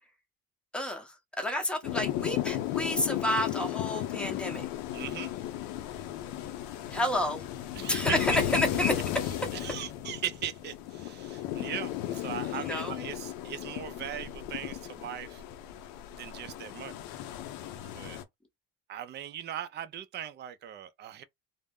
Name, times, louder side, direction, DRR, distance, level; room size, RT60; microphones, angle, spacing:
voice 1, 0.7-4.7 6.9-7.4 7.9-8.9 12.5-12.9, left 1 dB, 5° left, 0.8 m, -30 dB
sound 1, 1.8-18.2, left 12 dB, 90° left, 0.5 m, -35 dB
voice 2, 4.9-5.3 7.7-8.1 8.5-8.6 9.5-15.4 16.1-17.0 17.8-18.2 18.9-21.2, right 10 dB, 35° right, 0.4 m, -39 dB
2.1 x 2.0 x 3.5 m
cardioid pair, 110°, 33 cm